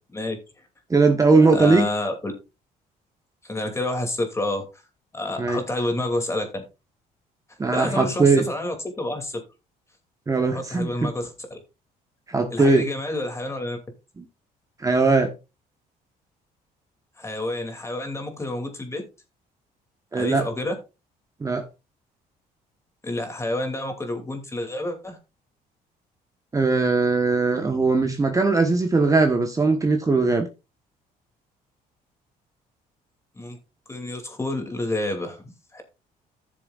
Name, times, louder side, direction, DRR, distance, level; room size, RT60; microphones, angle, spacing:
voice 1, 0.9-1.9 5.4-5.6 7.6-8.4 10.3-11.1 12.3-12.9 14.2-14.3 14.8-15.3 20.1-20.5 21.4-21.6 26.5-30.5, right 3 dB, 20° right, 1.2 m, -20 dB
voice 2, 1.4-2.3 3.4-4.8 5.1-6.6 7.7-9.4 10.5-11.6 12.5-13.8 17.2-19.0 20.1-20.7 23.0-25.2 33.3-33.6 33.9-35.4 35.7-35.8, left 1 dB, 15° left, 2.6 m, -29 dB
15.0 x 6.9 x 2.4 m
cardioid pair, 110°, 16 cm